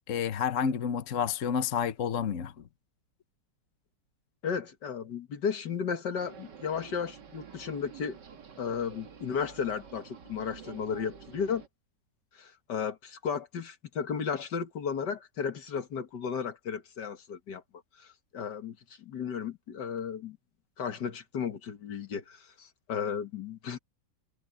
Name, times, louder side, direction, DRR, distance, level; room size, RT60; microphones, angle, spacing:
voice 1, 0.1-2.5, left 7 dB, 50° left, 1.2 m, -29 dB
voice 2, 4.4-8.2 8.6-11.6 12.3-17.6 18.0-20.4 20.8-23.8, left 6 dB, 65° left, 2.2 m, -34 dB
sound 1, 6.1-11.7, right 6 dB, 70° right, 2.3 m, -49 dB
omnidirectional pair, 2.0 m